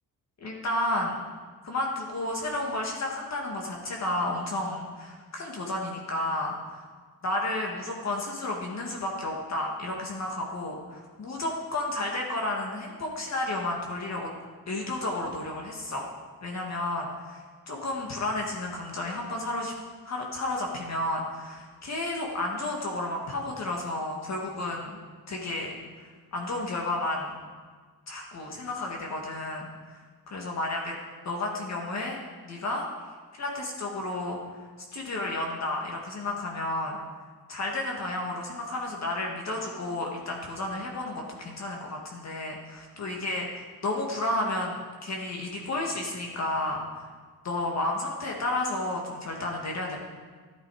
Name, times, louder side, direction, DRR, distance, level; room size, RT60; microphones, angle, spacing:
voice 1, 0.4-1.2 1.6-6.8 7.2-14.3 14.7-16.1 16.4-19.7 20.1-25.0 25.3-27.3 28.1-30.0 30.3-31.0 31.3-32.2 32.4-32.9 33.4-34.6 34.9-37.0 37.5-47.1 47.4-50.0, left 2 dB, 45° left, -1 dB, 1.9 m, -32 dB
13.5 x 11.5 x 4.9 m, 1.5 s
wide cardioid pair, 140°, 36 cm